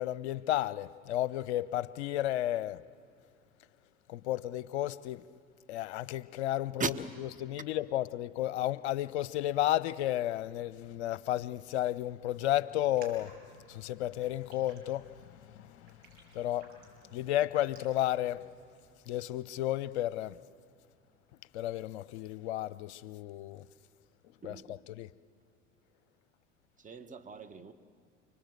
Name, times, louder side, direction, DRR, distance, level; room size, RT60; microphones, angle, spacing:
voice 1, 0.0-2.8 4.1-5.2 5.7-6.9 7.4-13.3 13.7-16.7 17.1-18.4 19.1-20.4 21.5-23.7 24.4-25.1, left 13 dB, 60° left, 0.7 m, -33 dB
Raindrop, 12.7-18.9, right 3 dB, 60° right, 6.7 m, -59 dB
voice 2, 24.4-24.8 26.8-27.7, right 5 dB, 20° right, 1.3 m, -38 dB
29.5 x 19.5 x 7.8 m
figure-of-eight pair, 70°, 38 cm